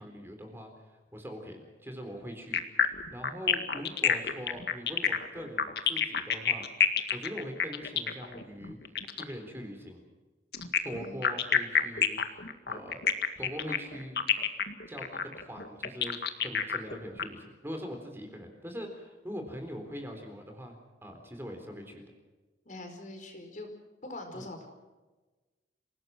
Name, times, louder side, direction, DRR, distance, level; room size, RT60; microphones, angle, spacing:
voice 1, 0.0-6.6 7.1-8.8 9.2-10.0 10.8-13.0 13.4-14.2 14.9-16.2 16.4-22.0 24.3-24.4, equal, 15° right, 4 dB, 3.8 m, -42 dB
sound 1, 2.5-9.3 10.5-17.2, left 7 dB, 60° left, 2.0 m, -28 dB
voice 2, 10.9-11.3 22.6-23.7 24.0-24.7, left 2 dB, 45° left, 5 dB, 4.8 m, -43 dB
27.5 x 18.5 x 6.2 m, 1.2 s
head